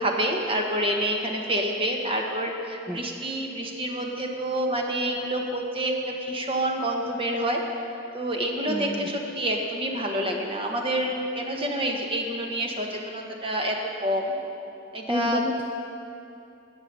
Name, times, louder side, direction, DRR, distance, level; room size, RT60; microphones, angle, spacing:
voice 1, 0.0-7.6 8.1-14.3 14.9-15.4, right 1 dB, 25° right, 1 dB, 1.3 m, -28 dB
voice 2, 8.7-9.1 15.1-15.7, left 1 dB, 10° right, 1 dB, 0.5 m, -30 dB
17.0 x 6.1 x 6.8 m, 2.8 s
head